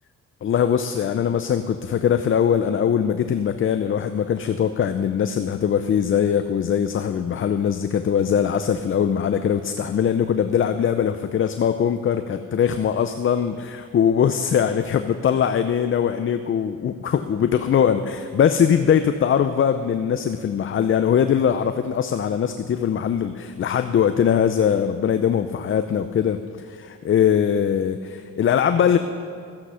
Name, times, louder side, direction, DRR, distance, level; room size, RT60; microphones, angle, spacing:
voice 1, 0.4-29.0, left 8 dB, 45° left, 9 dB, 0.6 m, -21 dB
13.5 x 9.8 x 5.7 m, 2.3 s
cardioid pair, 90°, 30 cm